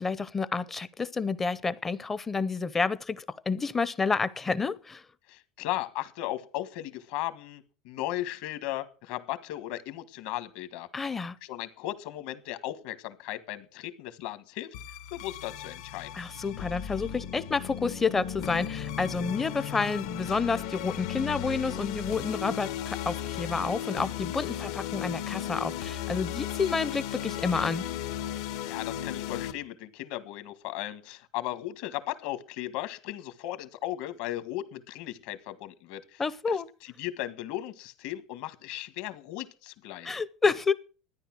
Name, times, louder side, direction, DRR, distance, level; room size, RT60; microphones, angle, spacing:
voice 1, 0.0-5.0 10.9-11.4 16.1-27.8 36.2-36.7 40.0-40.7, left 4 dB, 10° left, 0.6 m, -29 dB
voice 2, 5.3-10.9 11.4-14.7 15.1-16.1 28.7-36.2 36.5-36.6 37.0-40.1, left 14 dB, 60° left, 1.7 m, -36 dB
sound 1, 14.7-29.5, left 10 dB, 75° left, 1.6 m, -36 dB
13.0 x 10.0 x 6.2 m
cardioid pair, 175°, 2 cm